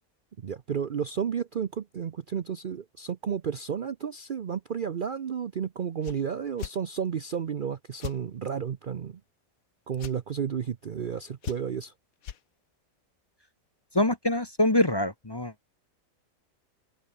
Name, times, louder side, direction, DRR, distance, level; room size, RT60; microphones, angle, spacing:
voice 1, 0.4-9.2 9.9-11.9, right 7 dB, 75° right, 0.4 m, -32 dB
sound 1, 6.0-6.2 6.6-6.8 8.0-8.2 10.0-10.2 11.4-11.8 12.2-12.4, left 9 dB, 55° left, 1.4 m, -37 dB
voice 2, 13.9-15.5, left 1 dB, 20° left, 0.9 m, -24 dB
open air
omnidirectional pair, 1.9 m